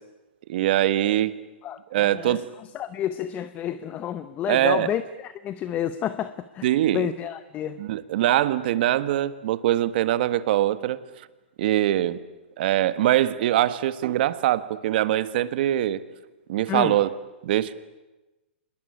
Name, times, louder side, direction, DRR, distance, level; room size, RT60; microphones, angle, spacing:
voice 1, 0.5-1.4 1.9-2.5 4.5-4.9 6.6-7.1 7.8-11.0 11.6-12.2 12.6-16.0 16.5-17.1 17.4-17.7, right 13 dB, 55° right, 14 dB, 1.5 m, -23 dB
voice 2, 1.6-2.4 2.7-7.8 16.7-17.0, left 10 dB, 25° left, 13 dB, 0.9 m, -30 dB
26.0 x 21.0 x 10.0 m, 1.1 s
hypercardioid pair, 145°, 6 cm